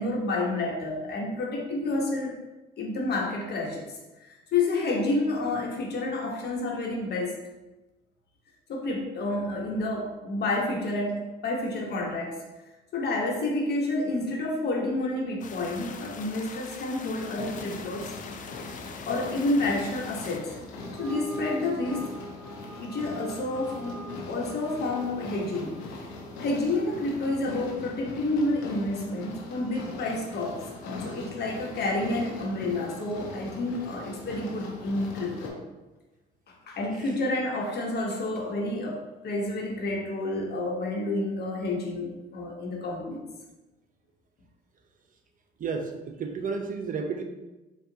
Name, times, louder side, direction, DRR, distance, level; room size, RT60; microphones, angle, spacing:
voice 1, 0.0-2.3 2.8-7.4 8.7-12.4 12.9-18.1 19.0-20.6 21.0-22.1 22.8-25.8 26.4-35.6 36.5-43.2, left 2 dB, 60° left, 0 dB, 1.1 m, -29 dB
sound 1, 15.4-20.4, left 6 dB, 45° left, 0.5 m, -43 dB
sound 2, 17.1-35.5, left 2 dB, 90° left, 0.7 m, -41 dB
sound 3, 20.7-27.3, right 1 dB, 10° right, 0.7 m, -44 dB
voice 2, 45.6-47.2, right 5 dB, 45° right, 4 dB, 0.6 m, -32 dB
4.5 x 2.4 x 3.9 m, 1.1 s
supercardioid pair, 65°, 19 cm